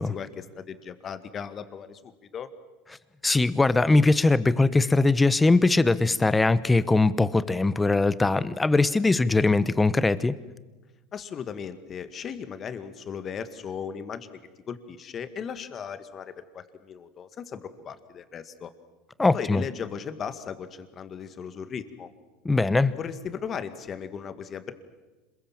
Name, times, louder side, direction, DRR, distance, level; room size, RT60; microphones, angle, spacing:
voice 1, 0.0-2.5 11.1-14.4 14.7-18.7 19.3-22.1 23.0-24.7, left 7 dB, 35° left, 10 dB, 1.9 m, -37 dB
voice 2, 3.2-10.3 19.2-19.6 22.4-22.9, left 3 dB, 10° left, 16 dB, 1.0 m, -21 dB
26.5 x 22.0 x 7.4 m, 1.2 s
supercardioid pair, 110°, 0 cm